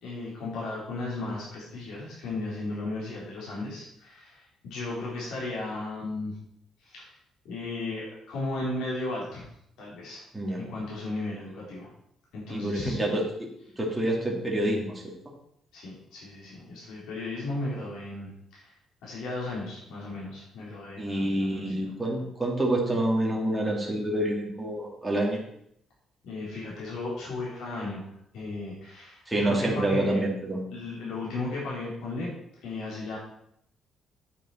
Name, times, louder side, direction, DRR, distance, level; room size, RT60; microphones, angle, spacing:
voice 1, 0.0-6.4 6.8-7.1 7.4-9.4 9.8-10.3 10.7-11.9 12.3-13.0 15.7-18.7 19.0-21.7 26.2-28.1 28.3-30.2 30.7-32.3 32.6-33.2, left 2 dB, 80° left, -6 dB, 3.9 m, -35 dB
voice 2, 12.5-13.5 13.8-15.1 21.0-25.4 29.3-30.7, right 1 dB, 5° right, -1 dB, 2.1 m, -27 dB
9.0 x 8.4 x 4.3 m, 0.72 s
cardioid pair, 160°, 0 cm